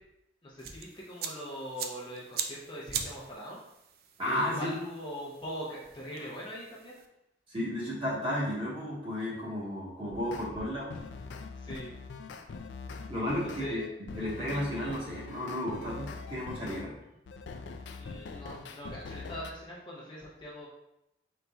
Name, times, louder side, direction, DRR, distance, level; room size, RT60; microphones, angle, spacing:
voice 1, 0.4-3.6 4.2-7.0 11.6-11.9 13.0-13.1 13.6-13.9 18.0-20.7, equal, 25° left, -5 dB, 0.7 m, -41 dB
sound 1, 0.6-7.1, right 7 dB, 55° right, 0.4 m, -42 dB
voice 2, 4.2-4.7 7.5-10.9 13.1-13.8 14.1-17.0, equal, 30° right, -7 dB, 1.4 m, -33 dB
sound 2, 10.2-10.5 10.9-16.9 17.3-19.5, left 4 dB, 80° left, 0.4 m, -43 dB
4.6 x 4.0 x 2.3 m, 0.87 s
head